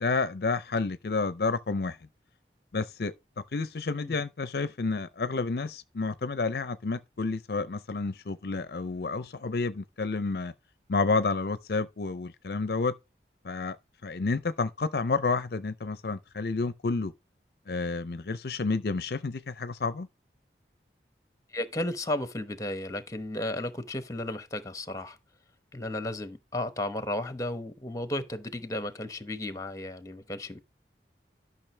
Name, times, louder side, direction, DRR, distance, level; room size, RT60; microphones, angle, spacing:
voice 1, 0.0-2.0 2.7-3.1 3.5-10.5 10.9-12.9 13.4-13.8 14.0-17.1 17.7-20.1, left 4 dB, 60° left, 0.5 m, -30 dB
voice 2, 21.5-25.2 25.7-30.6, left 1 dB, 20° left, 1.0 m, -34 dB
12.0 x 6.0 x 3.3 m
head